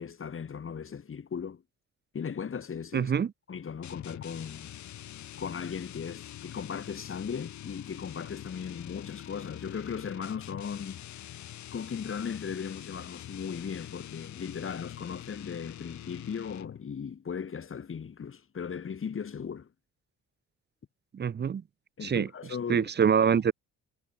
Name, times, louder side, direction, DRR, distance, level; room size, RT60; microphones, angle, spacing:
voice 1, 0.0-1.6 2.1-3.1 3.5-4.7 5.4-11.4 11.7-19.7 22.0-22.9, left 7 dB, 45° left, 4.3 m, -37 dB
voice 2, 2.9-3.3 21.1-21.6 22.0-22.3 22.7-23.5, right 7 dB, 35° right, 0.8 m, -25 dB
sound 1, 3.8-16.9, left 12 dB, 70° left, 1.8 m, -45 dB
cardioid pair, 90°, 30 cm